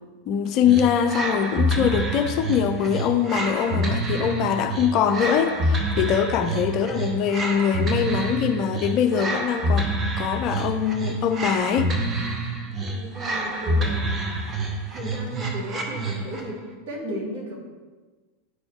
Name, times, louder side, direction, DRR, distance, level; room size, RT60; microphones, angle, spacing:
voice 1, 0.3-11.9, left 8 dB, 40° left, 8 dB, 0.4 m, -23 dB
sound 1, 0.6-16.5, right 1 dB, 20° right, 0.9 m, -27 dB
voice 2, 6.5-6.8 12.8-14.3 14.9-16.6 16.9-17.6, equal, 50° right, -3 dB, 2.0 m, -35 dB
9.4 x 4.1 x 3.3 m, 1.3 s
figure-of-eight pair, 90°, 0 cm